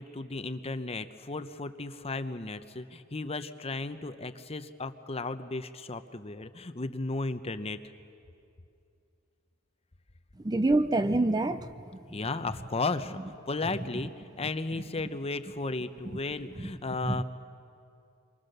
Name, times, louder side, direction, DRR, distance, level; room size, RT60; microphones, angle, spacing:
voice 1, 0.0-7.8 12.1-17.2, left 3 dB, 30° left, 10 dB, 0.8 m, -35 dB
voice 2, 10.4-11.7 16.6-16.7 17.0-17.2, right 2 dB, 20° right, 11 dB, 0.6 m, -26 dB
27.5 x 24.5 x 6.7 m, 2.5 s
head